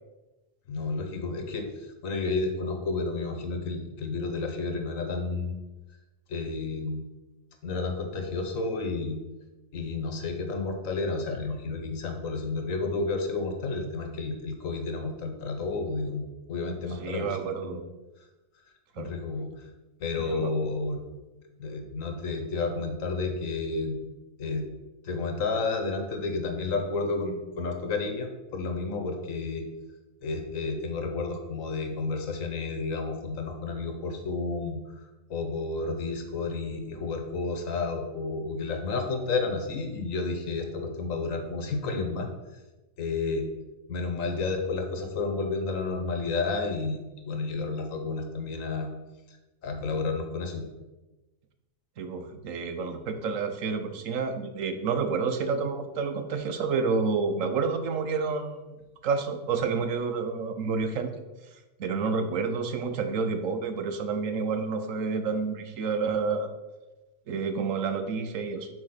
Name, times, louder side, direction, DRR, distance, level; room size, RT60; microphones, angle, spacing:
voice 1, 0.7-5.6 6.3-7.0 7.6-9.2 9.7-17.8 19.0-19.5 20.0-21.0 21.6-24.0 24.4-24.6 25.0-29.6 30.2-42.3 43.0-43.5 43.9-48.9 49.3-49.4 49.6-50.7, left 3 dB, 85° left, 4 dB, 1.5 m, -31 dB
voice 2, 17.0-17.8 19.0-19.1 20.2-20.5 52.0-61.1 61.8-66.5 67.3-68.7, right 5 dB, 80° right, 7 dB, 1.2 m, -29 dB
6.1 x 4.4 x 5.9 m, 1.1 s
omnidirectional pair, 1.4 m